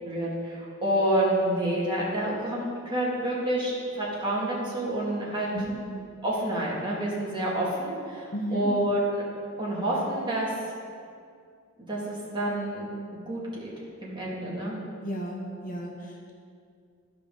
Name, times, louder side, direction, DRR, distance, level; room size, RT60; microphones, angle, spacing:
voice 1, 0.0-5.5 6.2-9.2 9.6-10.5 11.9-12.9 13.3-13.7 14.0-14.8, right 1 dB, 25° right, -6 dB, 2.1 m, -28 dB
voice 2, 8.3-8.7 15.0-16.3, right 1 dB, 40° left, -1 dB, 1.0 m, -32 dB
14.0 x 5.0 x 3.9 m, 2.3 s
head